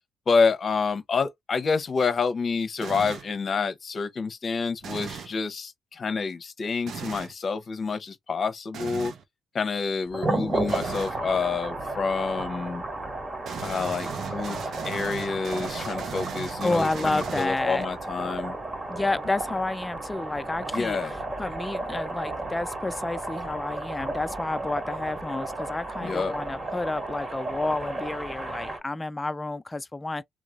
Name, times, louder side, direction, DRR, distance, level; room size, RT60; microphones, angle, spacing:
voice 1, 0.3-9.1 9.5-12.8 13.6-14.6 14.8-18.5 20.7-21.1 26.0-26.3, left 5 dB, 45° left, 0.9 m, -28 dB
sound 1, 2.8-3.4 4.8-5.4 6.9-7.3 8.7-9.2 10.7-11.2 13.4-17.8, right 7 dB, 65° right, 0.7 m, -37 dB
sound 2, 10.1-28.8, right 2 dB, 25° right, 1.6 m, -33 dB
voice 2, 16.6-17.9 18.9-21.0 21.4-30.2, left 2 dB, 15° left, 0.4 m, -30 dB
3.1 x 2.0 x 3.7 m
cardioid pair, 90°, 0 cm